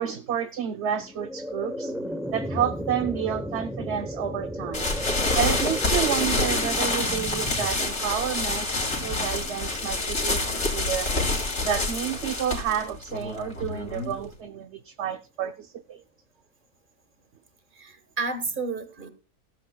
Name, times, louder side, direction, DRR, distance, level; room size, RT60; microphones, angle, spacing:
voice 1, 0.0-1.9 2.3-4.9 5.4-8.7 9.0-11.1 11.6-16.0, right 9 dB, 60° right, 0.9 m, -30 dB
sound 1, 0.8-11.9, equal, ahead, 0.4 m, -36 dB
sound 2, 4.7-14.3, left 2 dB, 55° left, 3.0 m, -27 dB
voice 2, 17.7-19.1, right 3 dB, 35° right, 1.5 m, -31 dB
15.5 x 13.5 x 2.3 m
omnidirectional pair, 1.6 m